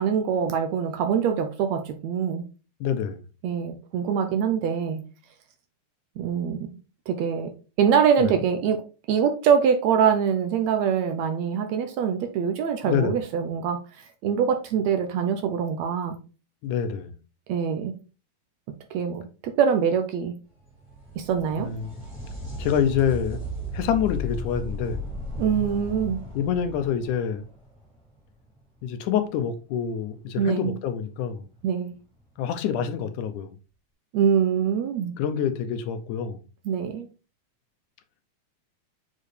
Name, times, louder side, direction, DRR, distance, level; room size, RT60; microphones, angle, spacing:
voice 1, 0.0-2.4 3.4-5.0 6.2-6.7 7.1-7.5 7.8-8.8 9.1-13.8 14.2-16.2 17.5-18.0 18.9-20.4 21.2-21.7 25.4-26.2 30.4-30.8 31.6-32.0 34.1-35.1 36.6-37.1, right 7 dB, 75° right, 1.7 m, -24 dB
voice 2, 2.8-3.2 8.2-8.3 12.8-13.2 16.6-17.2 21.6-22.0 22.6-23.4 23.7-25.1 26.4-27.4 28.8-31.5 32.4-33.5 35.2-36.4, left 8 dB, 75° left, 2.1 m, -26 dB
sound 1, 20.6-28.2 31.6-31.7 32.7-32.8, left 1 dB, 5° left, 1.9 m, -35 dB
7.3 x 4.5 x 3.3 m
omnidirectional pair, 3.8 m